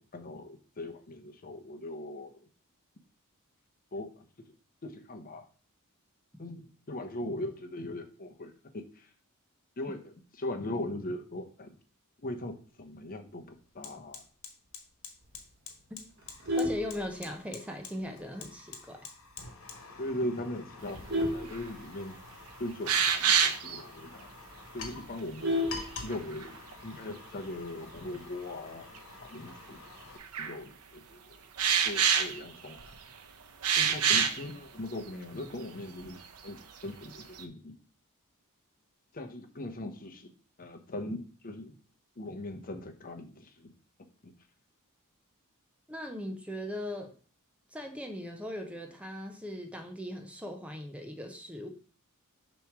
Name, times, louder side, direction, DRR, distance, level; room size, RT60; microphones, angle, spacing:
voice 1, 0.0-2.4 3.9-4.2 4.8-5.5 6.4-9.1 9.8-11.8 12.2-14.3 20.0-22.2 22.6-24.3 24.7-25.7 26.0-28.9 29.2-30.1 30.4-31.4 31.8-32.8 33.8-37.8 39.1-40.3 40.6-41.8 42.2-43.7 44.2-44.3, left 1 dB, 40° left, 5 dB, 0.8 m, -40 dB
Fire, 12.7-12.8 13.2-30.2, left 4 dB, 65° left, 1.4 m, -48 dB
Vehicle horn car horn honking, 16.2-17.7 18.1-18.4 18.7-18.8 19.2-19.3 19.6-20.0 20.5-22.4 22.7-22.8 23.1-23.2 23.6-23.7 24.1-24.2 24.4-26.5 27.7-28.1, left 1 dB, 50° right, 1.4 m, -33 dB
voice 2, 16.6-19.0 45.9-47.1 47.7-51.7, left 1 dB, 5° right, 4 dB, 0.9 m, -39 dB
sound 1, 21.5-21.6 22.1-22.2 22.9-23.8 26.0-26.7 28.0-28.1 28.9-29.0 30.2-30.6 31.6-33.0 33.6-34.4 35.1-35.2 35.5-35.6 36.0-36.5 36.8-37.4, right 7 dB, 90° right, 0.8 m, -27 dB
6.9 x 3.1 x 6.0 m, 0.40 s
head